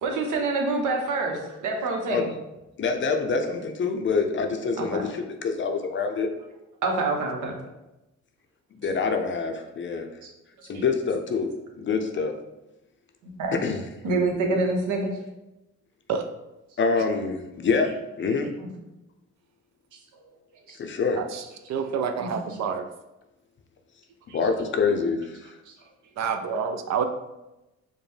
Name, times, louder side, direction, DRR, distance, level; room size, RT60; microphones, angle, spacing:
voice 1, 0.0-2.3 4.8-5.1 6.8-7.6 10.6-10.8 13.2-13.6 14.0-15.1 20.7-20.8 22.2-22.4 24.3-24.4, right 3 dB, 80° right, 1 dB, 0.9 m, -27 dB
voice 2, 2.8-6.3 8.7-10.1 10.7-11.5 11.8-12.3 13.5-13.8 16.8-18.5 20.8-21.2 24.3-25.5, left 4 dB, 40° left, 5 dB, 0.5 m, -26 dB
voice 3, 21.7-22.8 26.2-27.0, right 6 dB, 60° right, 7 dB, 0.4 m, -28 dB
5.0 x 2.1 x 3.2 m, 0.98 s
cardioid pair, 90°, 30 cm